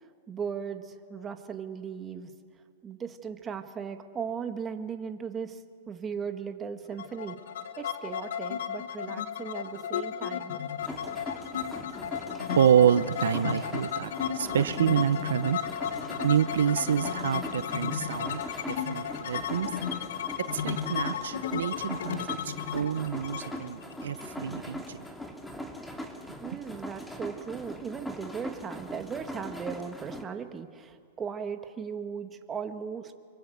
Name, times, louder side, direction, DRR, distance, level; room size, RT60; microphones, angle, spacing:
voice 1, 0.3-2.3 2.8-7.4 7.8-10.6 26.4-33.1, right 6 dB, 20° right, 7 dB, 1.8 m, -37 dB
sound 1, 7.0-24.7, left 9 dB, 75° left, 1.3 m, -34 dB
sound 2, 10.8-30.2, equal, 5° left, 2.4 m, -41 dB
voice 2, 12.5-15.6 16.2-18.4 18.7-19.7 20.5-25.1, right 9 dB, 85° right, 13 dB, 0.8 m, -27 dB
26.0 x 23.0 x 7.9 m, 2.1 s
hypercardioid pair, 125°, 0 cm